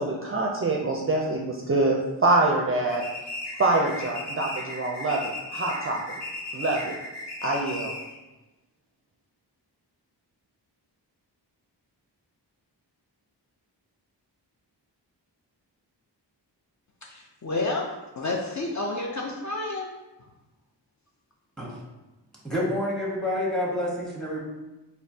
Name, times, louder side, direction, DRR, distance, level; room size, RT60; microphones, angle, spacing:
voice 1, 0.0-3.0 3.6-6.2 6.5-7.0 7.4-7.9, right 2 dB, 30° right, -1 dB, 0.4 m, -25 dB
sound 1, 2.9-8.2, left 1 dB, 65° left, 1.2 m, -36 dB
voice 2, 17.0-19.9, left 2 dB, 45° left, -1 dB, 0.5 m, -30 dB
voice 3, 22.4-24.4, left 1 dB, ahead, -5 dB, 1.2 m, -28 dB
4.2 x 2.7 x 2.7 m, 1.1 s
wide cardioid pair, 70°, 43 cm